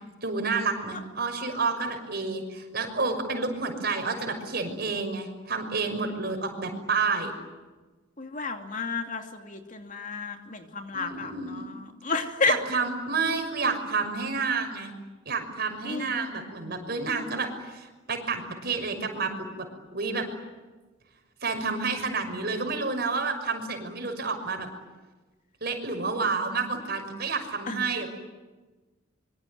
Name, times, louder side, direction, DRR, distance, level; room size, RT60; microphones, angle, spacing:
voice 1, 0.2-7.3 10.9-11.7 12.5-14.9 15.2-20.3 21.4-24.7 25.6-28.1, right 4 dB, 55° right, 5 dB, 6.1 m, -30 dB
voice 2, 8.2-12.6 15.8-16.3 27.7-27.8, left 4 dB, 40° left, 4 dB, 2.7 m, -31 dB
25.5 x 24.0 x 9.5 m, 1.2 s
head